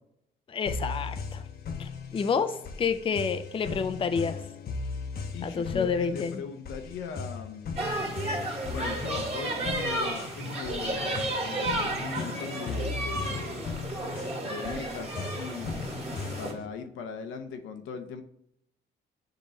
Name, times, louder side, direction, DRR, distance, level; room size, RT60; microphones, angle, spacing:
voice 1, 0.5-1.4 1.8-4.4 5.4-6.3, left 5 dB, 25° left, 10 dB, 0.4 m, -29 dB
sound 1, 0.7-16.7, left 4 dB, 50° left, 0.8 m, -38 dB
voice 2, 5.3-7.8 8.7-13.8 14.4-15.8 16.4-18.2, left 6 dB, 80° left, 6 dB, 0.8 m, -39 dB
sound 2, 7.8-16.5, right 1 dB, 30° right, 1.8 m, -32 dB
7.8 x 3.0 x 4.1 m, 0.77 s
cardioid pair, 90°, 20 cm